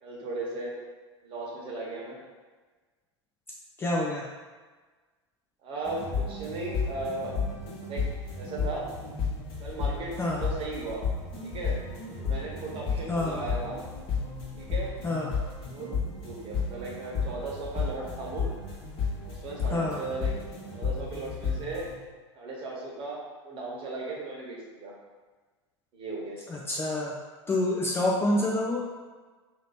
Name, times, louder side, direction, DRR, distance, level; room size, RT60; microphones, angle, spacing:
voice 1, 0.0-0.7 1.2-2.2 5.6-7.3 7.9-8.9 9.6-11.0 11.4-11.8 12.2-13.8 14.6-14.9 15.7-15.9 16.2-18.5 19.2-20.3 20.7-21.9 22.3-24.9 25.9-26.4, right 3 dB, 35° right, -4 dB, 1.3 m, -36 dB
voice 2, 3.8-4.3 10.2-10.4 13.1-13.5 15.0-15.4 19.7-20.1 26.5-27.2 27.5-28.9, left 1 dB, 15° left, -3 dB, 0.5 m, -28 dB
sound 1, 5.8-21.9, left 5 dB, 35° left, 1.2 m, -33 dB
3.0 x 2.8 x 4.1 m, 1.4 s
figure-of-eight pair, 90°, 15 cm